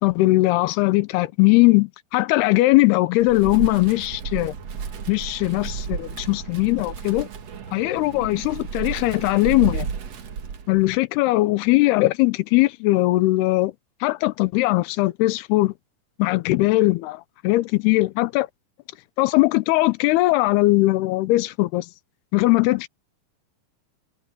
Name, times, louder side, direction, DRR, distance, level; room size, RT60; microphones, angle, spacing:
voice 1, 0.0-4.5 5.1-7.3 7.7-9.9 10.7-13.7 14.0-15.7 16.2-18.5 19.2-21.9 22.3-22.9, left 20 dB, 80° left, 2.7 m, -20 dB
Wind, 3.2-10.9, right 6 dB, 50° right, 2.2 m, -33 dB
omnidirectional pair, 4.8 m